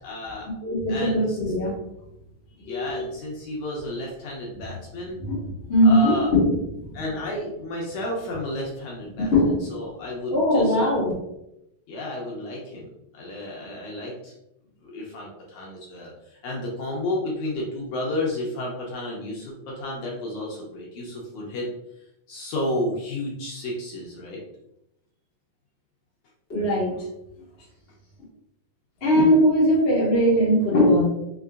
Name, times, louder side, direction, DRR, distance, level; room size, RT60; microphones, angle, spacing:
voice 1, 0.0-0.5 0.9-1.4 2.6-5.2 5.8-6.3 6.9-9.3 9.7-10.7 11.9-14.3 14.8-21.7 22.3-24.4 27.6-27.7, left 1 dB, 70° left, -3 dB, 1.9 m, -32 dB
voice 2, 0.6-1.8 2.7-3.0 5.2-7.0 9.2-9.7 10.3-11.1 26.5-26.9 29.0-31.1, equal, 55° left, -6 dB, 0.7 m, -20 dB
5.7 x 2.9 x 2.4 m, 0.82 s
omnidirectional pair, 4.0 m